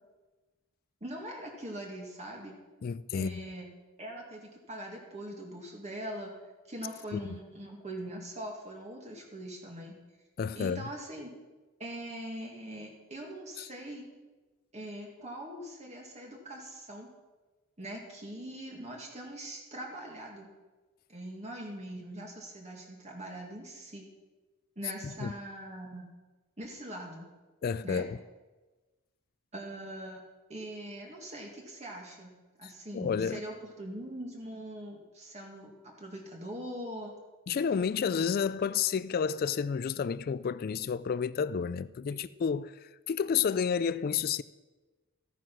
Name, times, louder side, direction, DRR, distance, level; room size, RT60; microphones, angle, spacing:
voice 1, 1.0-2.6 3.1-3.7 4.0-6.4 6.7-10.0 10.5-11.3 11.8-14.1 14.7-17.1 17.8-20.5 21.1-24.1 24.8-26.0 26.6-27.3 27.8-28.1 29.5-30.2 30.5-37.1, right 1 dB, 30° right, 2.0 m, -42 dB
voice 2, 2.8-3.5 7.1-7.4 10.4-10.8 13.6-13.7 25.0-25.3 27.6-28.2 32.9-33.4 37.5-44.4, left 6 dB, 45° left, 0.3 m, -31 dB
14.5 x 9.2 x 5.9 m
head